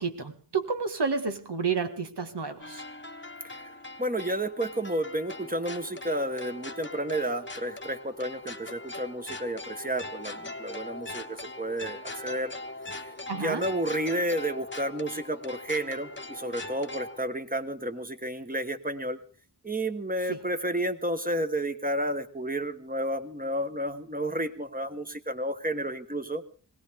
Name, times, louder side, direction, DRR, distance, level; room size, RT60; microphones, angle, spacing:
voice 1, 0.0-2.8 13.3-13.7 20.3-20.4, right 5 dB, 75° right, 7 dB, 1.8 m, -30 dB
sound 1, 2.6-17.3, left 2 dB, 25° left, 1.2 m, -41 dB
voice 2, 3.4-12.5 13.0-19.2 19.6-26.4, right 1 dB, 20° right, 8 dB, 1.5 m, -31 dB
20.5 x 17.5 x 3.7 m, 0.39 s
wide cardioid pair, 50°, 41 cm